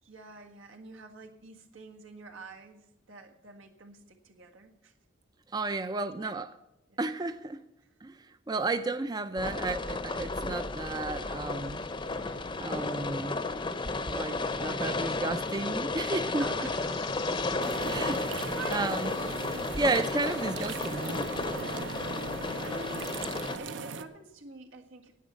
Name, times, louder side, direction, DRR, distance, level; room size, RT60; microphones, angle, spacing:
voice 1, 0.0-4.9 5.6-6.3 6.9-7.0 7.8-7.9 14.4-14.9 16.4-17.1 17.4-18.0 18.3-18.9 22.2-23.2 23.6-25.1, right 4 dB, 85° right, 1.7 m, -48 dB
voice 2, 5.5-6.5 7.0-7.6 8.0-8.1 8.5-11.8 12.6-13.5 14.1-16.4 17.3-17.4 17.9-18.2 18.7-19.0 19.5-21.3, right 3 dB, 20° right, 0.4 m, -32 dB
sound 1, 9.4-23.6, left 3 dB, 25° left, 0.7 m, -33 dB
sound 2, 11.5-21.3, left 6 dB, 80° left, 0.9 m, -51 dB
sound 3, 17.6-24.0, right 4 dB, 65° right, 0.8 m, -39 dB
10.0 x 8.8 x 8.1 m
head